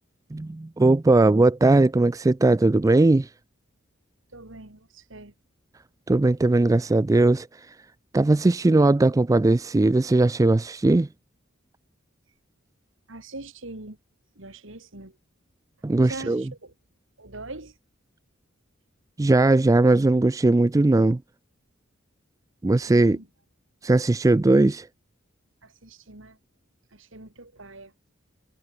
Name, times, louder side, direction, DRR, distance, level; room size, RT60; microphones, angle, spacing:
voice 1, 0.3-3.3 6.1-7.7 8.1-11.1 15.8-16.4 19.2-21.2 22.6-23.2 23.8-24.9, right 2 dB, 15° right, 0.3 m, -19 dB
voice 2, 4.3-5.3 13.1-14.0 14.3-15.2 16.0-16.7 17.2-17.8 22.6-23.3 25.6-26.4 26.9-27.9, right 2 dB, 65° right, 3.1 m, -42 dB
head